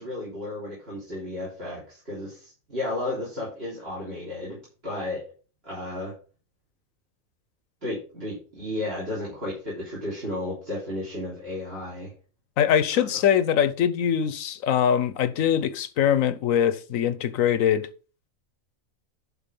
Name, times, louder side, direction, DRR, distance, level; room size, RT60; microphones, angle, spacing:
voice 1, 0.0-5.3 5.6-6.1 7.8-12.1 12.9-13.2, left 1 dB, 50° right, 3.9 m, -33 dB
voice 2, 12.6-17.9, left 9 dB, 80° left, 1.2 m, -22 dB
11.5 x 4.3 x 5.3 m
omnidirectional pair, 1.4 m